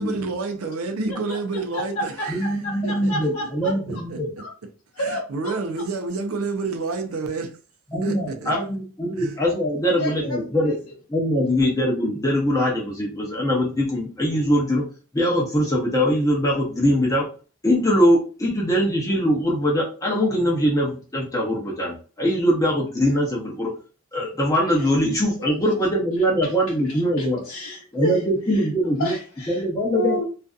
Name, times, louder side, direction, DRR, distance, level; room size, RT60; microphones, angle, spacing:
voice 1, 0.0-4.5 5.0-7.6 8.0-8.7 9.2-9.4, right 3 dB, 75° right, 0.5 m, -30 dB
voice 2, 1.7-4.0 4.4-4.5 4.9-5.5 8.5-8.6 9.8-10.7 26.9-28.2 29.0-29.6 29.9-30.2, equal, 90° left, 0.6 m, -31 dB
voice 3, 2.3-4.3 7.9-10.8 11.1-14.8 15.1-17.3 17.6-23.7 24.1-27.4 27.9-29.1 29.5-30.2, equal, 15° left, 0.6 m, -22 dB
2.5 x 2.4 x 2.3 m
head